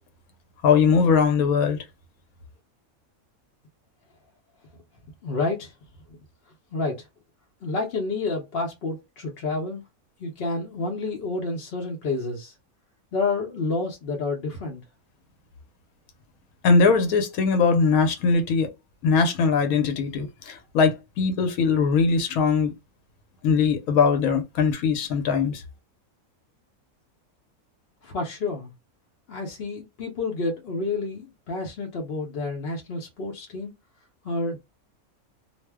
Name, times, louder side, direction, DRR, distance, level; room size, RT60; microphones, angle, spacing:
voice 1, 0.6-1.8 16.6-18.7 19.0-22.7 23.4-25.6, left 5 dB, 80° left, 1.1 m, -21 dB
voice 2, 5.2-5.7 6.7-7.1 7.6-9.8 10.2-12.5 13.1-14.8 28.0-28.7 29.3-33.7 34.2-34.6, left 3 dB, 55° left, 0.7 m, -29 dB
2.6 x 2.0 x 3.3 m
omnidirectional pair, 1.5 m